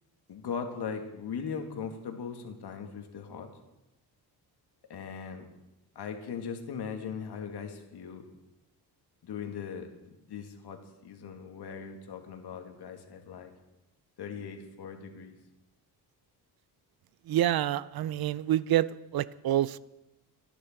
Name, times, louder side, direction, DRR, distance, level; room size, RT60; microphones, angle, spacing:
voice 1, 0.3-3.5 4.9-5.5 6.0-8.3 9.2-10.8 11.0-13.5 14.2-15.4, left 6 dB, 70° left, 2.3 m, -39 dB
voice 2, 17.3-18.9 19.1-19.8, right 13 dB, 60° right, 0.6 m, -27 dB
25.0 x 10.0 x 4.5 m
cardioid pair, 130°, 42 cm